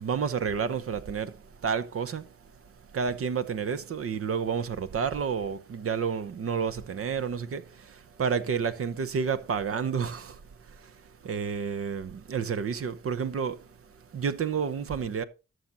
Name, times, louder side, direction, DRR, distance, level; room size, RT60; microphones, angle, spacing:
voice 1, 0.0-1.4 1.6-2.3 2.9-10.4 10.8-10.9 11.2-13.7 14.1-15.2, right 6 dB, 50° right, 0.9 m, -30 dB
13.0 x 6.3 x 4.1 m
hypercardioid pair, 40°, 30 cm